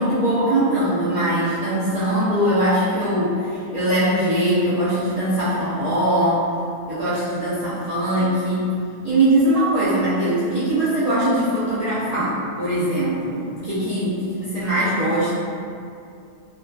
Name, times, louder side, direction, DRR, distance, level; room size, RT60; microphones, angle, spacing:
voice 1, 0.0-6.4 6.9-8.7 9.0-15.3, right 1 dB, 70° right, -14 dB, 0.3 m, -21 dB
2.3 x 2.3 x 2.3 m, 2.4 s
omnidirectional pair, 1.4 m